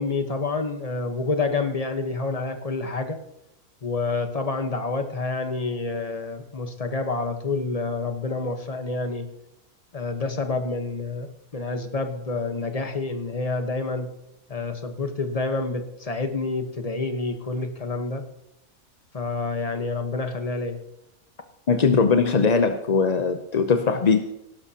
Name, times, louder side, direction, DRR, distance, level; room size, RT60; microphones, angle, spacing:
voice 1, 0.0-3.2 3.8-9.2 9.9-14.1 14.5-18.2 19.1-20.8, left 3 dB, 25° left, 6 dB, 1.1 m, -28 dB
voice 2, 21.7-24.2, left 5 dB, 45° left, 7 dB, 0.5 m, -20 dB
17.0 x 12.0 x 2.9 m, 0.86 s
omnidirectional pair, 1.6 m